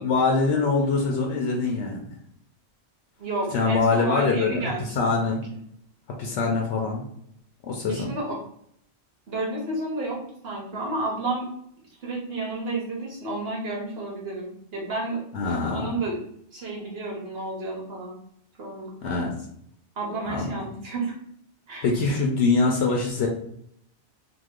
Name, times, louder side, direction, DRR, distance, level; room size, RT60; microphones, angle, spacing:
voice 1, 0.0-2.0 3.5-4.6 5.0-5.4 6.2-7.1 7.6-8.1 15.3-15.9 19.0-19.3 20.2-20.6 21.8-23.3, left 4 dB, 80° left, 0 dB, 0.9 m, -23 dB
voice 2, 3.2-5.0 5.2-5.4 7.9-8.4 9.3-10.2 10.4-11.4 12.0-15.2 15.5-16.2 16.5-18.2 18.6-19.2 20.0-21.2 21.7-21.9, right 2 dB, 60° right, -4 dB, 1.1 m, -31 dB
3.0 x 2.2 x 3.5 m, 0.70 s
omnidirectional pair, 1.2 m